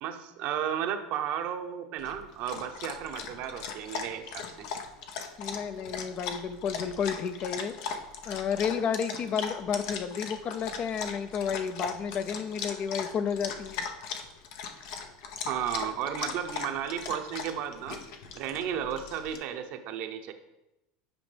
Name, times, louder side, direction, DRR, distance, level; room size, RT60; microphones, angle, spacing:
voice 1, 0.0-4.7 15.5-18.0 18.3-20.3, right 9 dB, 60° right, 7 dB, 0.8 m, -33 dB
Dog, 2.0-19.4, left 6 dB, 65° left, 0.8 m, -39 dB
voice 2, 5.4-7.8 8.3-13.8, left 7 dB, 40° left, 11 dB, 0.5 m, -31 dB
9.0 x 5.1 x 3.4 m, 0.92 s
hypercardioid pair, 95°, 3 cm